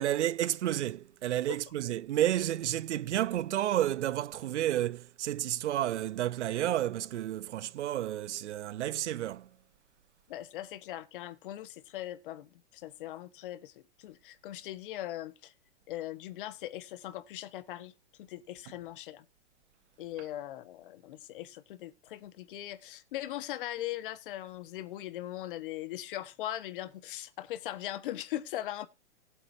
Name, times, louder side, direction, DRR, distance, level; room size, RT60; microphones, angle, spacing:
voice 1, 0.0-9.5, right 12 dB, 75° right, 0.7 m, -31 dB
voice 2, 10.3-15.5 15.9-17.9 18.2-19.2 20.0-28.9, left 13 dB, 45° left, 1.4 m, -40 dB
19.5 x 8.1 x 2.7 m
hypercardioid pair, 155°, 35 cm